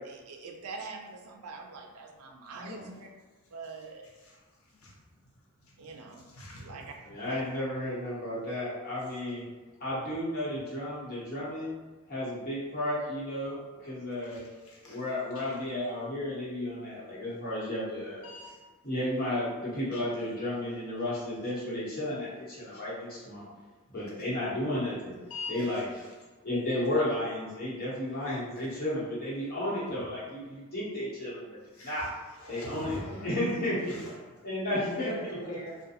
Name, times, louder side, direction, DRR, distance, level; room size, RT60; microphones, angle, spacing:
voice 1, 0.0-3.1 3.5-4.1 5.8-6.2 6.6-6.9 7.3-7.4, right 3 dB, 90° right, 3 dB, 0.4 m, -43 dB
voice 2, 2.5-2.9 4.3-4.4 4.8-5.0 6.3-6.9 14.2-15.7 18.2-18.6 19.9-20.0 22.7-22.8 25.3-26.1 31.7-32.1 32.4-34.2 34.6-35.8, left 1 dB, 75° left, -3 dB, 0.7 m, -42 dB
voice 3, 7.1-9.4 9.8-11.7 12.1-14.4 14.9-18.3 18.8-23.5 23.9-25.1 25.5-25.9 26.4-32.1 32.5-33.0 33.2-33.9 34.4-35.1, left 1 dB, 45° left, -9 dB, 1.0 m, -33 dB
2.5 x 2.2 x 2.7 m, 1.3 s
head